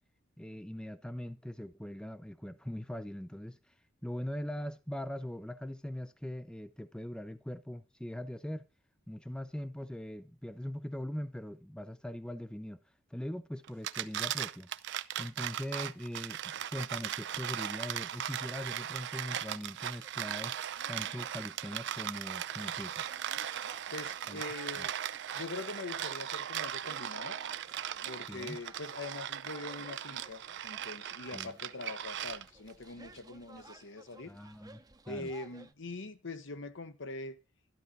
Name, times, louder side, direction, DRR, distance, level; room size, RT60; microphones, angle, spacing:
voice 1, 0.4-3.7 4.0-8.7 9.1-12.8 13.1-20.6 20.9-23.1 24.3-24.4 24.8-24.9 28.3-28.6 31.3-31.5 34.3-34.8 35.1-35.3, equal, 5° left, 0.6 m, -41 dB
sound 1, 13.7-32.7, right 10 dB, 60° right, 0.6 m, -38 dB
sound 2, 19.8-35.7, right 3 dB, 20° right, 0.9 m, -57 dB
voice 2, 23.9-24.9 25.3-27.4 28.1-34.3 35.1-37.4, left 3 dB, 65° left, 1.2 m, -43 dB
12.5 x 12.0 x 4.1 m
head